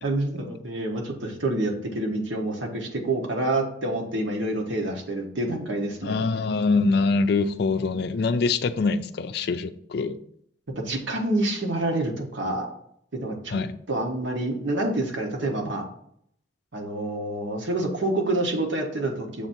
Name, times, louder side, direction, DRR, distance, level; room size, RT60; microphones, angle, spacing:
voice 1, 0.0-6.3 10.8-12.7 13.1-13.6 13.9-15.9 16.7-19.5, right 2 dB, 80° right, 1.3 m, -27 dB
voice 2, 6.0-10.2 13.5-13.7, left 4 dB, 55° left, 0.4 m, -24 dB
7.0 x 2.7 x 5.8 m
head